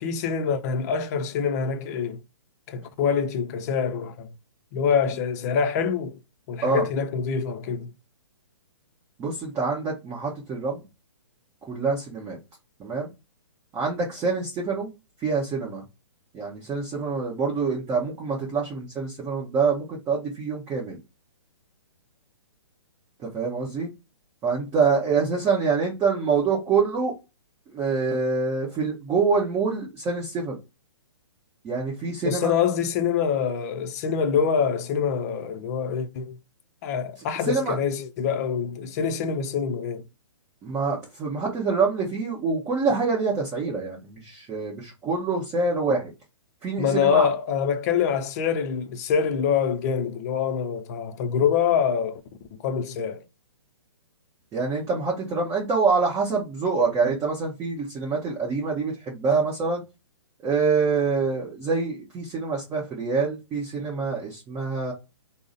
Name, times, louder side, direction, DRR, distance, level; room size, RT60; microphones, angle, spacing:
voice 1, 0.0-2.2 2.7-4.3 4.7-6.2 6.5-7.9 32.2-36.4 36.8-40.0 46.8-52.2 52.5-53.2, left 7 dB, 35° left, 0.6 m, -25 dB
voice 2, 9.2-10.8 11.7-12.4 12.8-13.1 13.7-14.9 15.2-15.8 16.3-21.0 23.2-23.9 24.4-27.1 27.7-30.6 31.6-32.6 37.5-37.8 40.6-46.1 46.6-47.3 54.5-59.8 60.4-64.9, right 4 dB, 20° right, 0.9 m, -26 dB
3.7 x 2.1 x 3.8 m
figure-of-eight pair, 130°, 15 cm